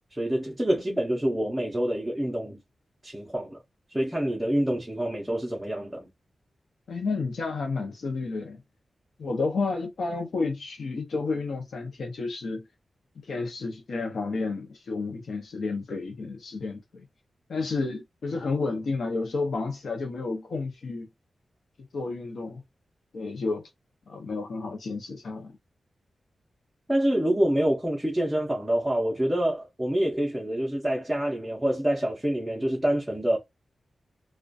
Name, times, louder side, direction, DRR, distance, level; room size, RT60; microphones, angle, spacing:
voice 1, 0.1-2.6 3.0-3.6 3.9-6.1 26.9-33.4, right 1 dB, 5° right, 0.5 m, -26 dB
voice 2, 6.9-8.6 9.2-12.6 13.2-17.1 17.5-21.1 21.9-22.6 23.1-23.7 24.1-25.5, left 3 dB, 65° left, 0.5 m, -31 dB
2.3 x 2.1 x 2.5 m
wide cardioid pair, 175°, 0 cm